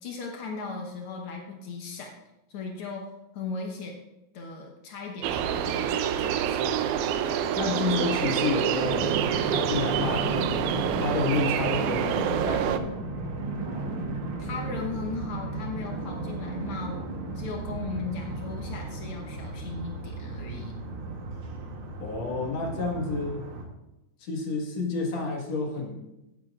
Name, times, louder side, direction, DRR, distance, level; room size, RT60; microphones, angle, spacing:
voice 1, 0.0-2.2 2.5-4.0 4.3-5.4 5.6-6.6 14.4-20.8, left 4 dB, 90° left, 0 dB, 1.2 m, -37 dB
sound 1, 5.2-12.8, right 9 dB, 90° right, 1.7 m, -27 dB
voice 2, 7.5-9.1 9.5-12.7 22.0-23.4 24.2-26.0, left 3 dB, 50° left, 0 dB, 2.5 m, -30 dB
sound 2, 8.8-23.6, right 2 dB, 70° right, 1.2 m, -34 dB
16.0 x 8.8 x 2.5 m, 0.92 s
omnidirectional pair, 4.3 m